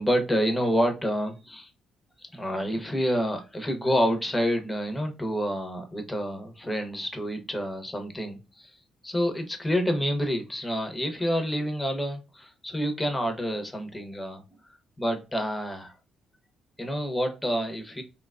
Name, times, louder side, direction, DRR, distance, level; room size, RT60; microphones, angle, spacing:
voice 1, 0.0-1.7 2.2-8.8 9.0-14.4 15.0-16.0 16.8-18.0, equal, 10° left, 0.7 m, -28 dB
2.8 x 2.3 x 2.3 m
cardioid pair, 90°, 0 cm